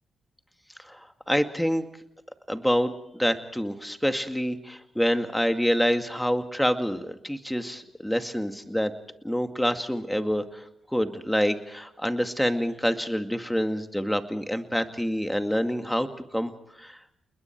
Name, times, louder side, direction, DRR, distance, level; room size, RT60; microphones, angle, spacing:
voice 1, 1.3-1.9 2.5-8.9 9.2-10.6 10.9-16.1 16.3-16.5 16.8-17.0, equal, 5° left, 7 dB, 2.2 m, -27 dB
29.5 x 21.0 x 4.7 m, 0.80 s
supercardioid pair, 45°, 0 cm